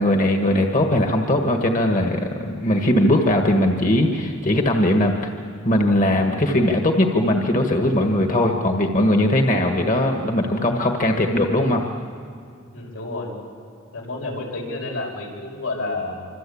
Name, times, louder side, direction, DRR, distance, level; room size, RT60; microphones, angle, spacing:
voice 1, 0.0-5.3 5.6-11.8, left 1 dB, 35° left, 3 dB, 1.6 m, -19 dB
voice 2, 12.7-13.3 13.9-16.3, left 2 dB, 90° left, 0 dB, 6.2 m, -30 dB
26.5 x 26.0 x 8.6 m, 2.4 s
head